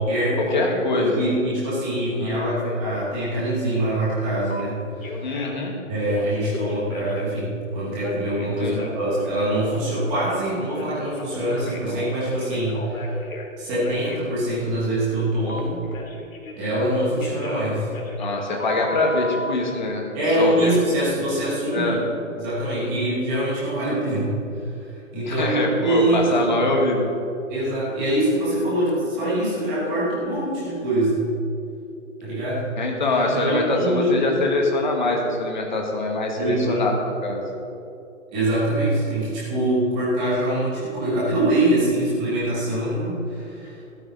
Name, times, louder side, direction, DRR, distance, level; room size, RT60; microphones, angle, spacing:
voice 1, 0.0-5.3 5.9-13.1 13.6-15.8 16.6-17.9 20.1-22.0 22.4-24.3 24.7-24.9 25.1-26.6 27.5-31.2 32.2-32.7 33.3-34.3 36.3-36.9 38.3-43.8, right 1 dB, 5° right, -8 dB, 1.3 m, -24 dB
voice 2, 0.5-1.3 2.2-2.8 5.2-5.7 8.6-8.8 18.2-20.0 20.4-20.7 21.7-22.0 22.8-22.9 25.3-27.1 32.8-36.9 37.2-37.4, left 2 dB, 35° left, 0 dB, 1.8 m, -24 dB
Telephone, 4.5-4.6 5.0-5.7 6.0-7.4 8.0-10.5 10.8-13.5 13.8-14.2 15.5-16.9 17.2-19.5, left 2 dB, 75° left, 2.7 m, -35 dB
15.5 x 12.5 x 4.0 m, 2.7 s
hypercardioid pair, 180°, 41 cm